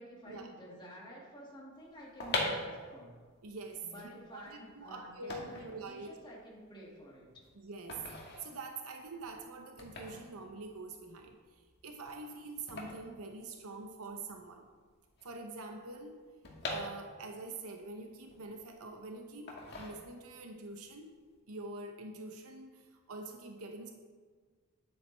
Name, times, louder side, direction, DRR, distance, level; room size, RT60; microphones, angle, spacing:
voice 1, 0.0-3.1 3.8-7.4, equal, 20° left, -4 dB, 2.0 m, -51 dB
sound 1, 1.9-14.1 14.3-14.4 14.6-17.5 17.9-18.9 19.5-20.5 20.8-21.1, left 2 dB, 50° left, 1.7 m, -42 dB
voice 2, 3.4-6.2 7.5-8.0 8.4-11.4 11.8-14.7 15.2-16.2 16.7-21.1 21.5-23.9, right 3 dB, 80° right, 4 dB, 0.8 m, -45 dB
10.0 x 8.1 x 3.3 m, 1.5 s
head